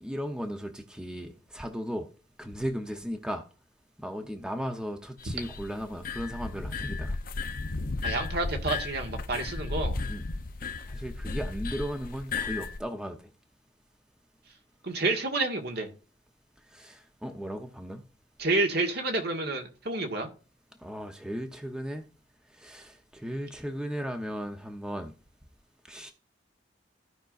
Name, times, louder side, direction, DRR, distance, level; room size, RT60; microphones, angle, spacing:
voice 1, 0.0-2.1 2.4-3.4 4.0-7.1 10.1-10.3 10.9-13.3 16.7-18.0 20.8-22.0 22.5-25.1 25.9-26.1, equal, 5° right, 0.8 m, -36 dB
sound 1, 5.2-12.8, left 3 dB, 50° left, 0.7 m, -34 dB
voice 2, 8.0-10.0 14.8-15.9 18.4-20.3, right 2 dB, 60° right, 1.7 m, -29 dB
15.5 x 5.2 x 2.5 m
head